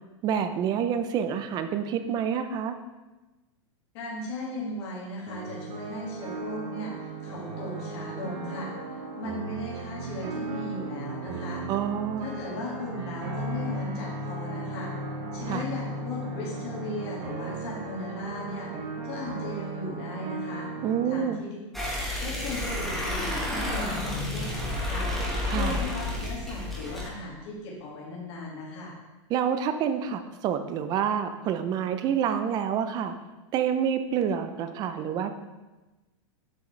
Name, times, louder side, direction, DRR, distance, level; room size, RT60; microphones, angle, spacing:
voice 1, 0.2-2.8 11.7-12.3 15.5-15.6 20.8-21.4 25.5-25.8 29.3-33.1 33.5-35.3, right 8 dB, 25° right, 9 dB, 0.5 m, -28 dB
voice 2, 3.9-8.7 9.2-11.6 12.2-14.9 15.3-18.7 19.0-20.7 21.1-21.6 21.9-22.0 22.2-25.1 25.5-28.9, left 2 dB, 55° left, -4 dB, 2.0 m, -37 dB
sound 1, 5.3-21.2, right 2 dB, 45° right, 2.1 m, -36 dB
sound 2, 21.7-27.1, left 1 dB, ahead, 1.3 m, -30 dB
7.8 x 5.9 x 3.2 m, 1.1 s
supercardioid pair, 150°, 16 cm